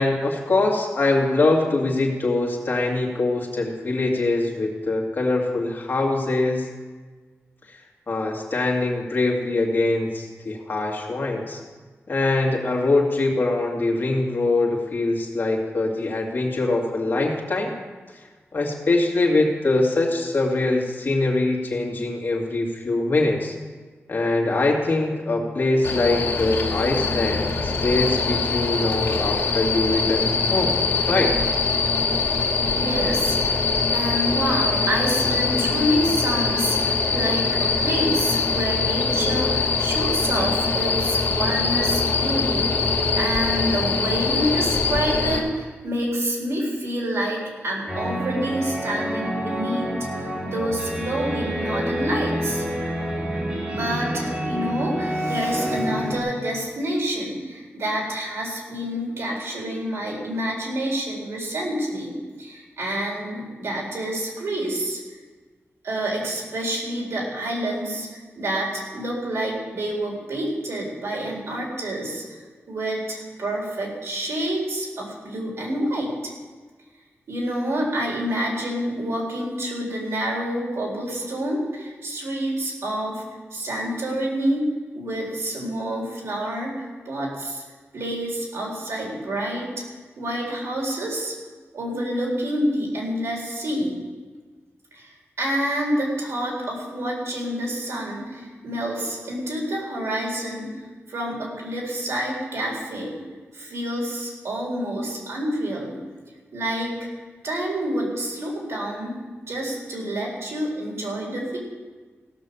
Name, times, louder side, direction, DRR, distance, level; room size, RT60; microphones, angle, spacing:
voice 1, 0.0-6.7 7.7-7.8 8.1-11.6 12.1-17.7 18.5-23.6 24.1-30.7 31.1-31.4, left 2 dB, 45° left, -1 dB, 2.3 m, -23 dB
sound 1, 25.8-45.4, left 4 dB, 65° left, 2.3 m, -23 dB
voice 2, 32.7-33.6 33.9-52.7 53.7-65.0 65.8-72.4 72.7-76.3 77.3-83.2 83.5-84.6 84.9-87.6 87.9-89.7 90.2-91.3 91.7-94.0 94.9-103.2 103.5-106.0 106.5-107.0 107.4-109.2 109.5-111.6, right 1 dB, 80° right, -2 dB, 3.9 m, -28 dB
sound 2, 47.9-56.2, equal, 25° right, 3.2 m, -28 dB
16.5 x 6.5 x 7.0 m, 1.4 s
wide cardioid pair, 155°, 5 cm